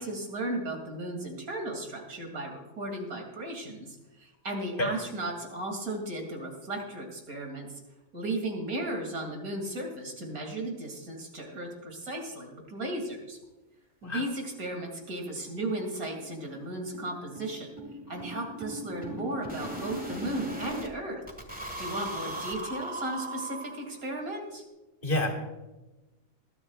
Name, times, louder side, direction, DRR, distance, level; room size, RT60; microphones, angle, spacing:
voice 1, 0.0-7.7 8.1-13.4 14.0-17.7 18.1-21.2 21.8-24.6, right 1 dB, 90° right, 2 dB, 3.0 m, -35 dB
sound 1, 14.0-14.1 14.4-14.5 14.9-15.0 15.3-15.4 15.7-20.9 21.3-24.1, right 1 dB, 5° right, 1.5 m, -39 dB
voice 2, 25.0-25.3, left 1 dB, 40° left, 0 dB, 2.5 m, -27 dB
21.0 x 12.5 x 2.4 m, 1.1 s
omnidirectional pair, 1.5 m